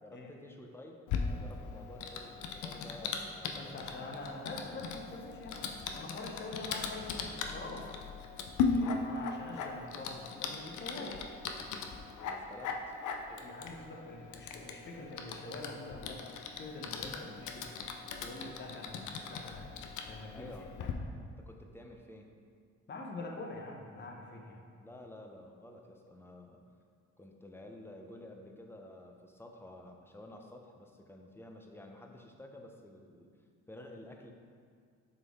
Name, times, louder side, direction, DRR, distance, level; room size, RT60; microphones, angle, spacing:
voice 1, 0.0-4.3 8.7-9.0 12.2-12.9 20.3-20.7 21.2-22.3 24.7-26.6 27.2-33.3 33.7-34.3, left 1 dB, 10° left, 2 dB, 0.6 m, -51 dB
Typing, 1.1-20.9, left 5 dB, 75° left, 0.6 m, -39 dB
voice 2, 3.5-5.6 5.9-7.9 9.0-11.3 13.3-17.7 18.2-19.7 20.1-20.5 20.8-20.9 22.9-24.6, left 2 dB, 35° left, 0 dB, 1.0 m, -45 dB
6.4 x 4.3 x 3.7 m, 2.1 s
cardioid pair, 90°, 30 cm